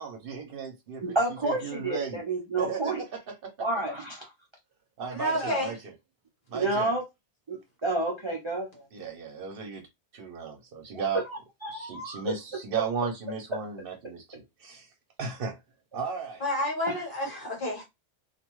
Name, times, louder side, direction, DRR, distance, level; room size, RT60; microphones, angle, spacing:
voice 1, 0.0-1.2 1.4-2.2 2.6-3.7 5.0-5.8 6.5-6.9 8.9-9.8 10.1-11.2 11.7-14.9 15.2-15.6 15.9-16.4, right 5 dB, 60° right, 0.8 m, -35 dB
voice 2, 1.0-3.0 3.6-4.2 5.3-5.6 6.5-7.0 7.5-8.9 11.3-12.2, right 2 dB, 35° right, 0.5 m, -30 dB
voice 3, 5.1-5.7 16.4-17.8, left 1 dB, 55° left, 1.3 m, -29 dB
2.5 x 2.2 x 2.9 m
omnidirectional pair, 1.1 m